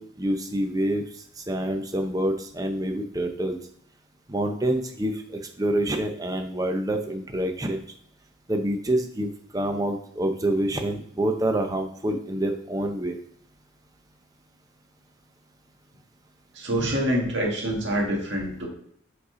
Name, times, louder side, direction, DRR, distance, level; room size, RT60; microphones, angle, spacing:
voice 1, 0.0-3.6 4.3-7.8 8.5-13.2, right 1 dB, 20° right, 5 dB, 0.6 m, -27 dB
voice 2, 16.5-18.7, equal, 65° right, -2 dB, 1.8 m, -26 dB
5.2 x 4.2 x 5.0 m, 0.66 s
head